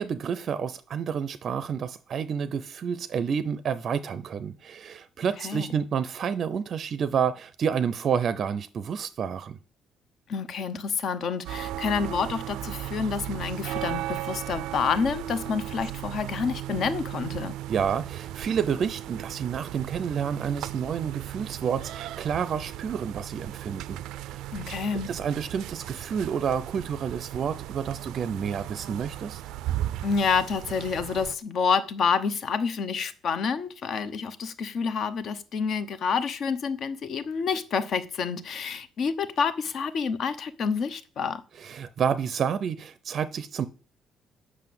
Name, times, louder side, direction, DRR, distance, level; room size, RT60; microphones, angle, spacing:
voice 1, 0.0-9.6 17.7-24.0 24.3-24.4 25.1-29.4 41.6-43.7, right 7 dB, 40° right, 0.5 m, -29 dB
voice 2, 10.3-17.5 24.5-25.1 30.0-41.4, left 6 dB, 45° left, 0.8 m, -28 dB
sound 1, 11.5-31.4, right 13 dB, 90° right, 0.4 m, -36 dB
9.0 x 6.3 x 7.7 m
cardioid pair, 170°, 0 cm